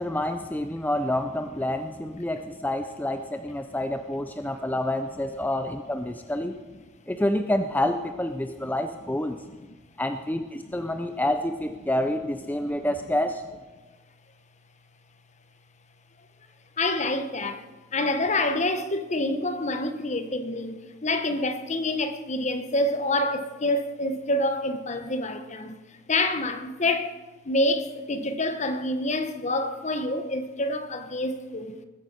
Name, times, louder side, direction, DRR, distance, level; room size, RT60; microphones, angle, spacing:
voice 1, 0.0-6.6 7.1-9.4 10.0-13.4, left 1 dB, 10° left, 0.5 m, -28 dB
voice 2, 9.4-9.8 10.6-10.8 12.6-12.8 13.0-13.1 16.8-17.6 17.9-27.2 27.4-31.8, left 2 dB, 35° left, 1.1 m, -27 dB
20.0 x 9.4 x 6.6 m
head